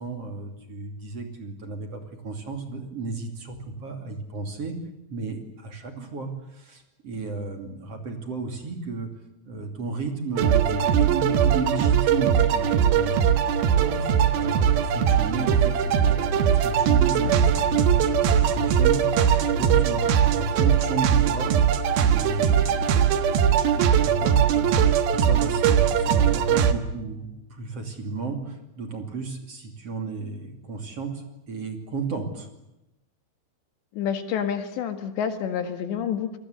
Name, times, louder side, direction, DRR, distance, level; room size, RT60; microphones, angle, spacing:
voice 1, 0.0-4.7 5.1-9.1 9.4-13.2 13.7-17.4 17.7-19.0 19.5-21.7 21.9-22.9 23.7-32.5, right 4 dB, 35° right, 5 dB, 3.1 m, -33 dB
sound 1, 10.4-26.7, right 8 dB, 65° right, 2.8 m, -20 dB
Explosion, 17.1-23.2 23.5-23.6, left 6 dB, 90° left, 4.4 m, -38 dB
voice 2, 33.9-36.4, left 8 dB, 70° left, 8 dB, 3.8 m, -28 dB
28.0 x 21.0 x 8.1 m, 0.90 s
omnidirectional pair, 5.5 m